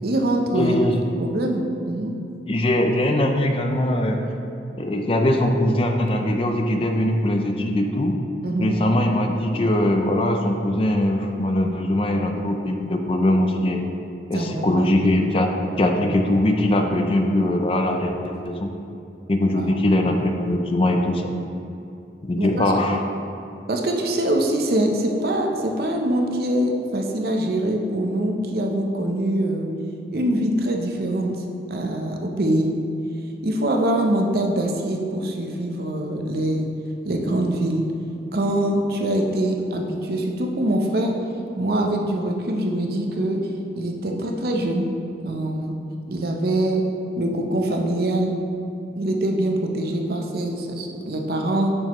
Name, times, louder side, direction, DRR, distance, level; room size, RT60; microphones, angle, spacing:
voice 1, 0.0-0.8 1.2-2.1 8.4-8.8 14.3-14.9 19.6-19.7 22.4-22.7 23.7-29.7 30.1-32.7 33.4-36.7 37.0-37.8 38.3-41.1 41.6-43.4 43.7-44.9 45.2-45.8 46.1-46.8 47.2-48.3 48.9-51.7, right 1 dB, 55° right, 2 dB, 0.6 m, -24 dB
voice 2, 0.5-1.0 2.5-4.2 4.8-8.2 8.6-13.8 14.3-15.5 15.8-18.7 19.3-21.3 22.2-23.0, left 1 dB, 30° left, 4 dB, 0.4 m, -21 dB
6.4 x 6.2 x 3.0 m, 2.8 s
head